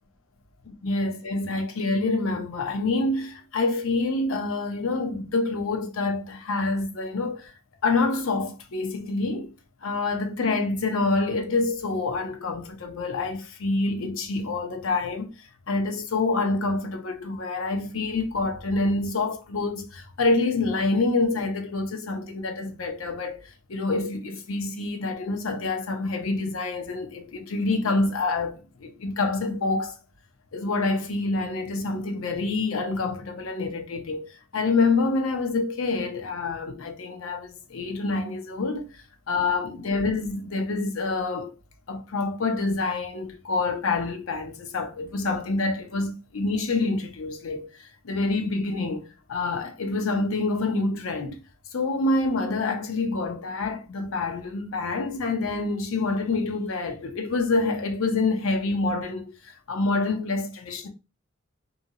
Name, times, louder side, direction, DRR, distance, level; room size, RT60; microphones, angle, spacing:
voice 1, 0.7-7.5 7.8-9.5 9.8-30.0 30.5-34.3 34.5-41.5 41.9-51.4 51.7-60.9, left 3 dB, 75° left, 0.6 m, -27 dB
2.8 x 2.7 x 2.7 m
head